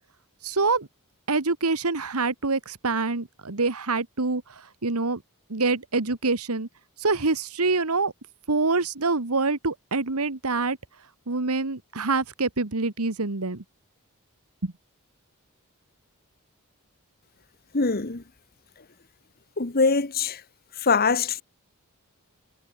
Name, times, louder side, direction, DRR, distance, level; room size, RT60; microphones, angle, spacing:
voice 1, 0.4-0.9 1.3-5.2 5.5-6.7 7.0-8.1 8.5-10.8 11.3-13.6 14.6-14.7, right 3 dB, 80° right, 1.6 m, -26 dB
voice 2, 17.7-18.2 19.6-20.4 20.8-21.4, left 4 dB, 45° left, 1.3 m, -23 dB
head